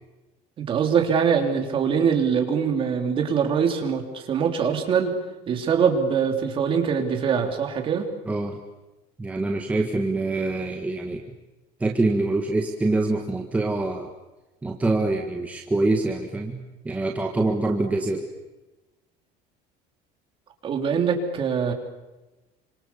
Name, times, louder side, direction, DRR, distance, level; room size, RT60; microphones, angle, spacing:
voice 1, 0.6-5.1 5.5-8.1 20.6-21.7, right 6 dB, 30° right, 4 dB, 3.5 m, -23 dB
voice 2, 8.3-8.6 9.2-11.3 11.8-14.1 14.6-18.2, right 2 dB, 10° right, 2 dB, 1.7 m, -25 dB
27.5 x 26.0 x 7.2 m, 1.1 s
cardioid pair, 170°, 17 cm